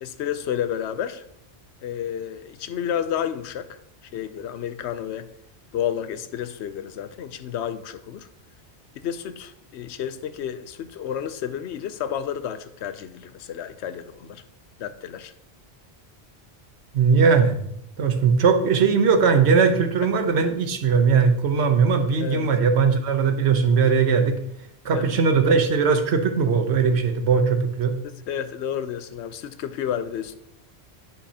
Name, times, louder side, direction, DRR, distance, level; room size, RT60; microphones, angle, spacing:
voice 1, 0.0-1.2 1.8-3.8 4.1-5.3 5.7-8.3 8.9-14.4 14.8-15.3 20.0-20.1 22.2-22.5 24.9-25.2 28.0-30.3, left 9 dB, 90° left, 0.9 m, -31 dB
voice 2, 16.9-17.6 18.0-24.4 24.8-27.9, right 5 dB, 80° right, 1.1 m, -19 dB
9.9 x 5.8 x 2.8 m
omnidirectional pair, 1.1 m